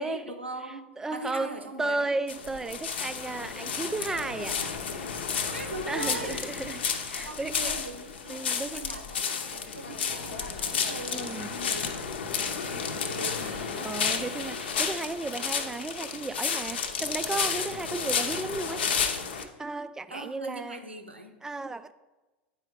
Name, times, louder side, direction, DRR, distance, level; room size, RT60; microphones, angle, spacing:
voice 1, 0.0-2.1 5.4-6.4 7.2-14.2 20.1-21.4, right 2 dB, 90° right, 0.8 m, -41 dB
voice 2, 0.6-4.8 5.9-7.7 8.3-9.0 11.1-11.5 13.8-18.9 19.3-20.8 21.4-21.9, right 3 dB, 10° right, 0.3 m, -34 dB
sound 1, 2.3-19.4, left 6 dB, 65° left, 0.8 m, -32 dB
8.8 x 4.8 x 4.7 m
figure-of-eight pair, 90°, 6 cm